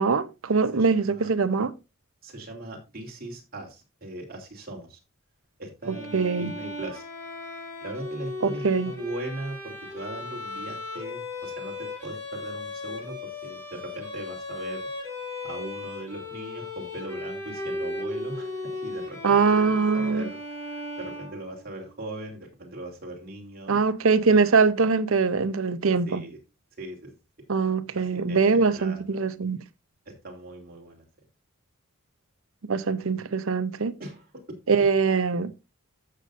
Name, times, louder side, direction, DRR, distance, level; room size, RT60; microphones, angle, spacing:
voice 1, 0.0-1.7 6.1-6.5 8.4-8.9 19.2-20.3 23.7-26.2 27.5-29.6 32.7-34.0 34.7-35.5, right 4 dB, 70° right, 0.7 m, -22 dB
voice 2, 0.7-1.3 2.2-5.0 5.6-7.0 7.8-14.8 15.4-20.4 20.6-23.9 26.1-26.4 26.8-27.1 27.9-29.0 30.0-31.1 33.1-33.2 34.0-34.4, right 1 dB, 45° right, 3.0 m, -39 dB
Bowed string instrument, 5.8-21.8, left 2 dB, 10° left, 4.8 m, -36 dB
14.0 x 6.6 x 2.6 m
head